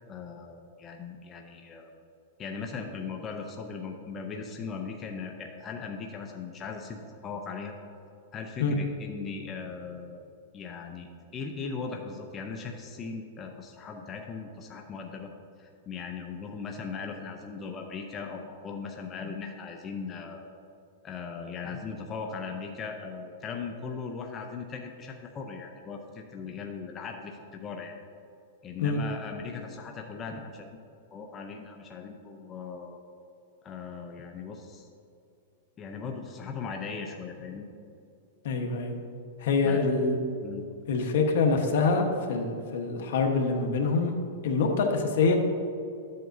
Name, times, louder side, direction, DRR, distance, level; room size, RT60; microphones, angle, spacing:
voice 1, 0.1-1.9 2.4-7.7 8.3-10.2 10.5-15.3 15.6-20.5 21.0-27.9 28.6-30.8 31.1-33.0 33.6-34.9 35.8-37.7 39.7-39.8 40.4-40.7, left 5 dB, 25° left, 2 dB, 0.6 m, -38 dB
voice 2, 38.4-38.9 39.4-40.2 40.9-44.1 44.4-45.3, left 4 dB, 65° left, 3 dB, 1.1 m, -25 dB
12.5 x 7.7 x 2.7 m, 2.5 s
hypercardioid pair, 140°, 0 cm